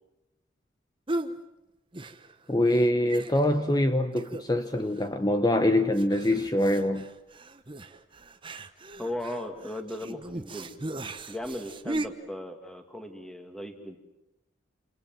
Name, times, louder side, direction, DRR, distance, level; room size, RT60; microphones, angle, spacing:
sound 1, 1.1-1.4 1.9-2.5 2.7-2.8 3.1-3.7 4.2-4.7 5.0-5.1 6.0-12.1, right 2 dB, 25° right, 1.1 m, -37 dB
voice 1, 2.5-7.1, left 1 dB, 20° left, 8 dB, 0.9 m, -24 dB
voice 2, 9.0-10.8 11.3-14.0, left 1 dB, 5° left, 6 dB, 2.3 m, -37 dB
28.0 x 27.5 x 7.6 m, 0.94 s
head